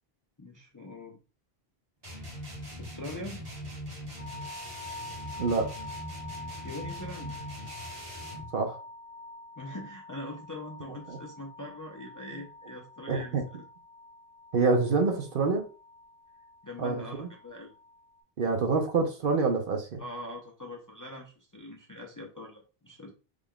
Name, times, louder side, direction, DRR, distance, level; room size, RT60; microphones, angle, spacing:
voice 1, 0.4-1.2 2.8-3.4 6.6-7.3 9.6-13.4 16.6-17.7 20.0-23.1, left 1 dB, 30° left, 1 dB, 0.4 m, -42 dB
sound 1, 2.0-8.5, equal, 40° right, 1.5 m, -41 dB
sound 2, 4.2-18.2, left 2 dB, 75° left, 1.4 m, -46 dB
voice 2, 13.1-13.4 14.5-15.6 16.8-17.3 18.4-20.0, right 4 dB, 60° right, 3 dB, 0.9 m, -26 dB
3.8 x 3.4 x 2.2 m, 0.34 s
omnidirectional pair, 1.0 m